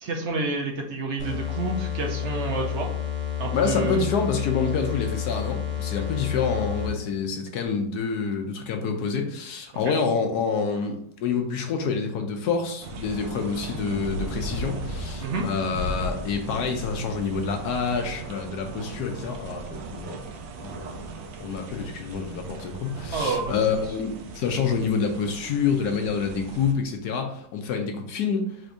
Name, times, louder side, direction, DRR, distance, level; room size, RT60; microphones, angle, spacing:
voice 1, 0.0-2.9 3.4-4.0 9.9-10.0 15.2-15.5 23.1-23.6, right 3 dB, 60° right, 1 dB, 0.7 m, -29 dB
sound 1, 1.2-7.1, left 10 dB, 15° right, 0.4 m, -30 dB
voice 2, 3.5-20.2 20.6-20.9 21.4-28.5, left 5 dB, 70° left, 4 dB, 1.1 m, -27 dB
sound 2, 12.8-26.7, right 2 dB, 75° right, 1.3 m, -36 dB
4.3 x 2.6 x 4.6 m, 0.66 s
omnidirectional pair, 1.9 m